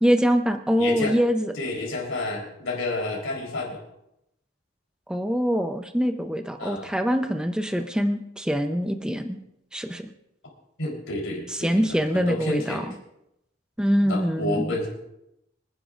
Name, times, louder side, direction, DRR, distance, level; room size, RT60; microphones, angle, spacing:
voice 1, 0.0-1.5 5.1-9.4 9.7-10.1 11.6-12.8 13.8-14.7, equal, 5° right, 6 dB, 0.6 m, -24 dB
voice 2, 0.8-1.1 1.5-3.8 6.6-6.9 10.8-12.8 14.0-14.9, left 2 dB, 85° left, -2 dB, 3.7 m, -30 dB
25.5 x 10.0 x 2.5 m, 0.82 s
head